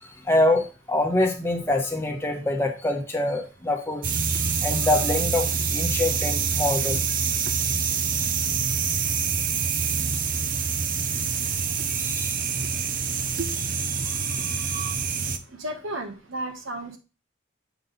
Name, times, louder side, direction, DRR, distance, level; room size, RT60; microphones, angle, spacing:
voice 1, 0.0-7.0 12.0-12.4 13.5-13.6 14.0-14.8, left 1 dB, 10° left, 2 dB, 1.1 m, -26 dB
sound 1, 4.0-15.4, right 6 dB, 40° right, 0.6 m, -26 dB
voice 2, 15.5-17.0, right 1 dB, 80° right, 5 dB, 1.3 m, -34 dB
6.9 x 3.8 x 3.9 m, 0.32 s
head